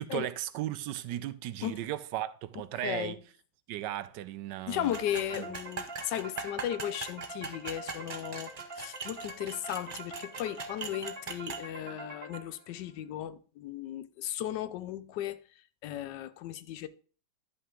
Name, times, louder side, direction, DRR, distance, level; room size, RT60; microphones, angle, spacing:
voice 1, 0.0-3.2 3.7-4.9 5.3-5.5, right 13 dB, 80° right, 1.2 m, -36 dB
voice 2, 2.8-3.2 4.7-15.4 15.8-16.9, left 11 dB, 80° left, 1.2 m, -36 dB
sound 1, 4.9-12.8, right 2 dB, 35° right, 1.5 m, -45 dB
sound 2, 4.9-11.6, right 4 dB, 50° right, 0.5 m, -41 dB
11.0 x 5.6 x 3.7 m
omnidirectional pair, 1.9 m